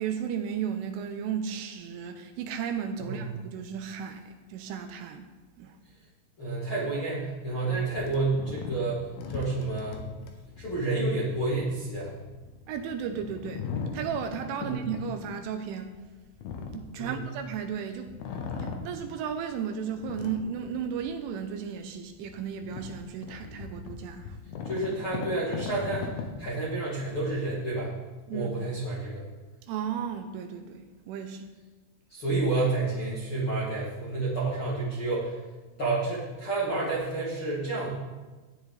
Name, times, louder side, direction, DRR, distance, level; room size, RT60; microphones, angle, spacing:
voice 1, 0.0-5.3 5.6-5.8 12.7-13.7 13.9-16.0 16.7-18.1 18.5-24.4 28.3-28.5 29.6-31.5, right 7 dB, 85° right, 6 dB, 2.9 m, -34 dB
voice 2, 6.4-9.0 9.3-10.0 10.6-12.1 14.6-14.8 17.0-17.2 24.6-27.9 28.3-29.2 32.1-35.4 35.8-37.9, right 3 dB, 50° left, -9 dB, 1.5 m, -30 dB
sound 1, 7.9-17.7 18.1-19.5 19.9-21.2 21.7-21.8 22.2-27.4, left 5 dB, 85° left, 2.2 m, -39 dB
14.5 x 10.0 x 4.0 m, 1.3 s
omnidirectional pair, 6.0 m